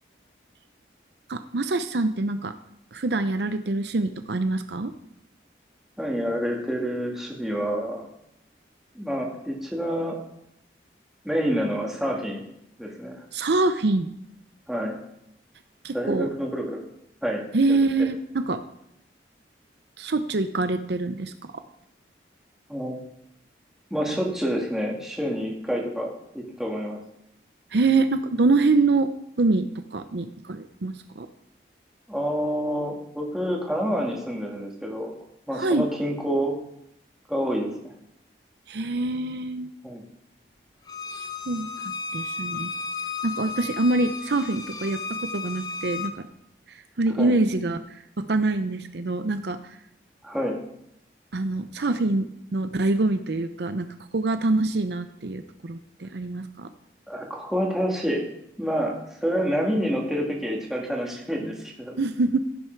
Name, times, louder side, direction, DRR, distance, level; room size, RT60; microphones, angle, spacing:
voice 1, 1.3-2.5 2.9-4.9 13.3-14.1 15.8-16.3 17.5-18.6 20.0-21.6 27.7-29.1 29.4-31.3 35.5-35.9 38.7-39.7 41.5-42.7 43.2-46.3 46.7-49.6 51.3-53.9 54.1-56.7 62.0-62.4, right 3 dB, 70° right, 10 dB, 0.6 m, -25 dB
voice 2, 6.0-8.0 9.0-10.2 11.2-12.4 12.8-13.2 14.7-15.0 15.9-16.8 17.2-17.4 17.7-17.8 22.7-23.0 23.9-27.0 32.1-35.2 35.5-36.5 37.3-37.9 39.8-40.0 43.6-43.7 47.1-47.4 50.2-50.6 57.1-58.2 58.6-58.9 59.2-61.9, equal, 5° right, -2 dB, 1.9 m, -28 dB
Bowed string instrument, 40.9-46.1, left 4 dB, 20° left, 0.7 m, -34 dB
15.5 x 6.7 x 4.6 m, 0.76 s
head